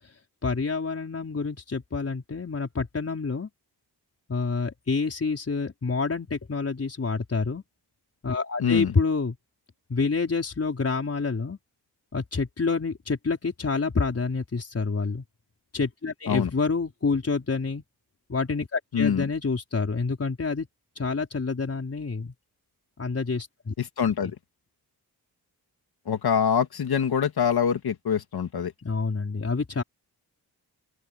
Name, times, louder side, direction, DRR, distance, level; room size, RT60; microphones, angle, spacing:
voice 1, 0.4-3.5 4.3-7.6 8.2-9.4 9.9-11.6 12.1-15.2 15.7-17.8 18.3-20.7 20.9-22.3 23.0-23.7 24.2-24.3 28.8-29.8, left 4 dB, 35° left, 5.1 m, -28 dB
voice 2, 8.6-8.9 16.3-16.5 18.9-19.2 23.8-24.4 26.1-28.7, left 7 dB, 65° left, 2.2 m, -24 dB
open air
wide cardioid pair, 120°, 40 cm